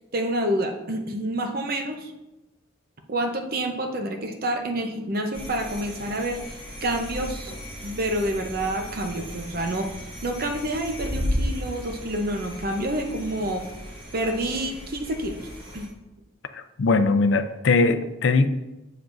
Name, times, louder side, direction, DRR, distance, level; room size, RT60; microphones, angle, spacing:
voice 1, 0.1-2.1 3.1-6.4 6.8-7.5 7.8-9.9 10.2-13.6 14.1-15.4 15.7-15.9, right 1 dB, 50° right, 5 dB, 0.8 m, -28 dB
sound 1, 5.3-15.9, equal, 25° right, 1.5 m, -35 dB
voice 2, 16.5-18.5, left 3 dB, 65° left, 10 dB, 0.5 m, -21 dB
7.4 x 7.0 x 2.6 m, 0.98 s
head